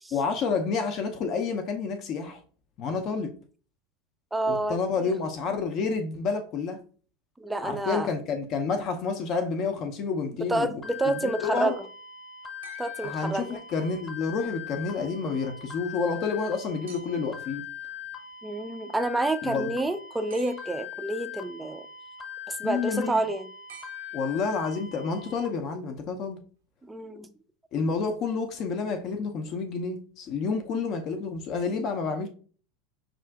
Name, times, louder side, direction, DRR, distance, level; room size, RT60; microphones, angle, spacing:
voice 1, 0.1-2.4 2.8-3.3 4.5-6.8 7.6-10.7 11.0-11.8 13.0-17.6 19.4-19.7 22.6-23.2 24.1-26.4 27.7-32.3, left 5 dB, 40° left, 0.5 m, -29 dB
voice 2, 4.3-5.1 7.4-8.1 10.5-11.8 12.8-13.6 18.4-21.9 22.5-23.5 26.8-27.3, right 2 dB, 10° right, 0.4 m, -29 dB
sound 1, 10.8-25.5, left 8 dB, 15° left, 0.9 m, -41 dB
sound 2, 12.6-14.0 16.9-17.5 20.3-21.1 23.7-24.7 26.3-26.4, right 7 dB, 70° right, 0.5 m, -52 dB
5.6 x 2.4 x 2.3 m
figure-of-eight pair, 80°, 0 cm